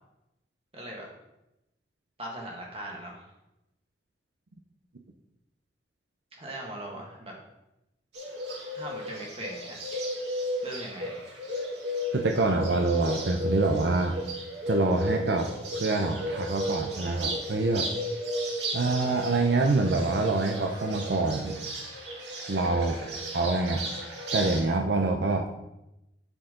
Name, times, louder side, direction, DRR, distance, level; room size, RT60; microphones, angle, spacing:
voice 1, 0.7-1.1 2.2-3.2 6.3-7.3 8.7-9.8 10.6-11.3 22.8-23.1, right 1 dB, 35° right, -1 dB, 1.8 m, -40 dB
Bird, 8.1-24.6, equal, 90° right, 2.3 m, -34 dB
voice 2, 12.1-14.2 14.7-17.9 18.7-21.6 22.5-23.0 23.3-23.8 24.3-25.5, right 2 dB, 70° right, 2 dB, 0.7 m, -26 dB
11.0 x 4.7 x 3.8 m, 0.90 s
head